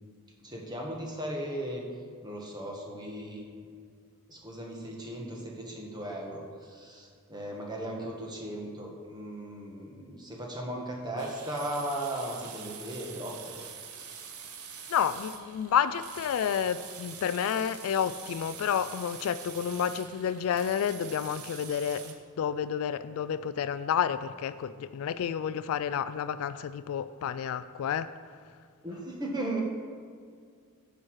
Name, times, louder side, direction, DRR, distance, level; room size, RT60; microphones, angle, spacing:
voice 1, 0.4-1.8 2.2-3.4 4.3-13.6 28.8-29.6, right 1 dB, 20° right, -1 dB, 1.4 m, -37 dB
sound 1, 11.2-22.1, right 7 dB, 75° right, 0.9 m, -45 dB
voice 2, 14.9-28.1, left 8 dB, 65° left, 14 dB, 0.3 m, -30 dB
9.8 x 6.2 x 4.8 m, 2.1 s
head